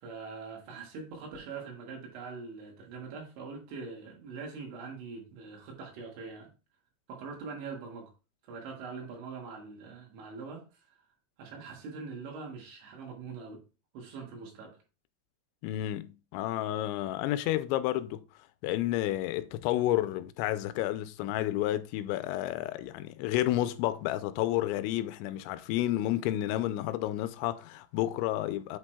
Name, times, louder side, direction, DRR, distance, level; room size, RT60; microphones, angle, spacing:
voice 1, 0.0-6.5 7.1-8.1 8.4-10.6 11.4-13.6 13.9-14.8, right 4 dB, 80° right, 4.1 m, -43 dB
voice 2, 15.6-18.2 18.6-28.8, left 14 dB, 85° left, 2.9 m, -31 dB
8.2 x 6.1 x 2.3 m
omnidirectional pair, 5.2 m